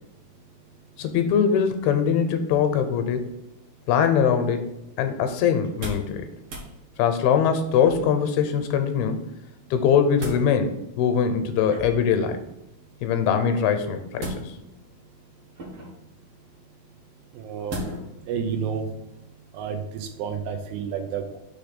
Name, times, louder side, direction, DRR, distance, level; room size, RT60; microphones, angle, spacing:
voice 1, 1.0-3.3 3.9-4.6 5.0-6.3 7.0-9.2 9.7-12.4 13.0-14.3, left 7 dB, 85° left, 8 dB, 2.6 m, -22 dB
sound 1, 5.6-6.1 6.4-6.7 7.8-8.3 9.7-10.5 11.7-12.2 14.2-14.8 15.6-16.0 17.7-18.2 18.6-18.7, equal, 55° right, 1.8 m, -35 dB
voice 2, 17.4-17.8 18.3-18.9 19.5-21.4, right 7 dB, 80° right, 5 dB, 2.6 m, -30 dB
6.4 x 3.4 x 5.8 m, 0.89 s
omnidirectional pair, 4.4 m